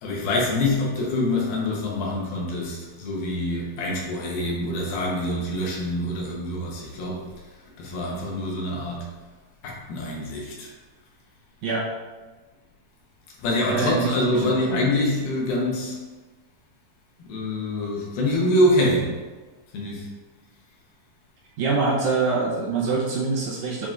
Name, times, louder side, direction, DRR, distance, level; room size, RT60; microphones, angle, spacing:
voice 1, 0.0-7.2 7.8-9.1 9.6-10.7 13.4-16.0 17.2-19.1 19.7-20.1, left 1 dB, 80° left, -2 dB, 2.7 m, -25 dB
voice 2, 13.7-14.9 21.6-23.9, right 4 dB, 75° right, -5 dB, 1.6 m, -25 dB
7.3 x 2.8 x 2.4 m, 1.3 s
omnidirectional pair, 4.1 m